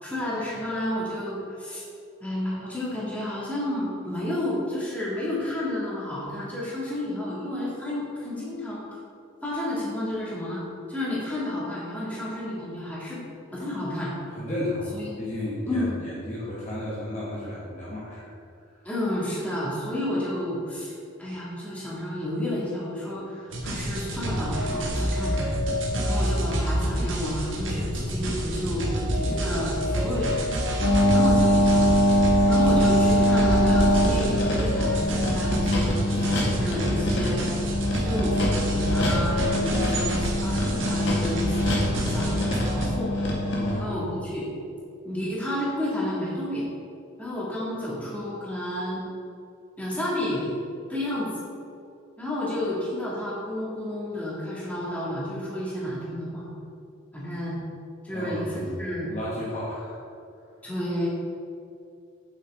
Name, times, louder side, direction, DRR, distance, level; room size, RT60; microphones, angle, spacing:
voice 1, 0.0-1.8 2.2-8.8 9.4-10.6 10.9-13.2 13.5-14.2 14.9-15.1 15.6-16.0 18.8-20.9 21.2-25.5 26.0-28.9 29.1-30.4 31.1-37.5 38.0-43.3 43.8-44.5 45.0-46.6 47.2-49.0 49.8-50.5 50.9-51.3 52.2-56.5 57.1-57.6 58.0-59.1 60.6-61.1, left 1 dB, 5° left, -8 dB, 2.3 m, -31 dB
voice 2, 14.3-18.3 43.5-43.9 58.1-60.0, left 1 dB, 35° left, -7 dB, 1.4 m, -33 dB
sound 1, 23.5-42.9, equal, 65° right, 1.6 m, -28 dB
sound 2, 30.8-43.7, equal, 55° left, 1.9 m, -23 dB
9.0 x 7.8 x 3.7 m, 2.5 s
head